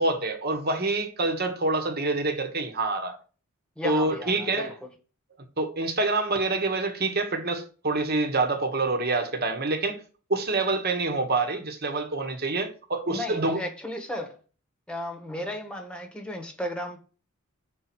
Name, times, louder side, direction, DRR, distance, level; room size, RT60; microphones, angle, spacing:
voice 1, 0.0-3.2 3.8-4.7 5.6-10.0 10.3-13.6, right 3 dB, 45° right, 1.5 m, -26 dB
voice 2, 3.8-4.7 13.1-14.4 14.9-17.0, left 1 dB, 5° left, 1.4 m, -34 dB
6.7 x 4.3 x 6.2 m
head